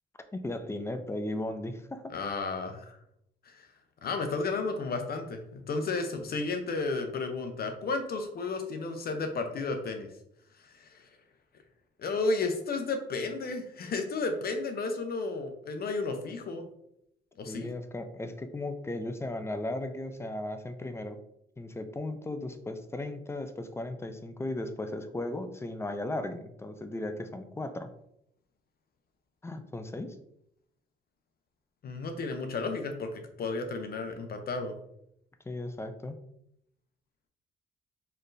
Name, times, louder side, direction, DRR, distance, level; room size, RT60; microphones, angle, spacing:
voice 1, 0.3-2.0 17.5-21.2 21.6-27.9 29.4-30.2 35.5-36.2, left 1 dB, 15° left, 9 dB, 0.4 m, -36 dB
voice 2, 2.1-3.0 3.5-3.7 4.0-10.1 10.6-11.1 12.0-16.7 17.4-17.7 31.8-34.7, left 3 dB, 50° left, 6 dB, 0.7 m, -33 dB
4.1 x 3.2 x 2.6 m, 0.76 s
cardioid pair, 90°, 20 cm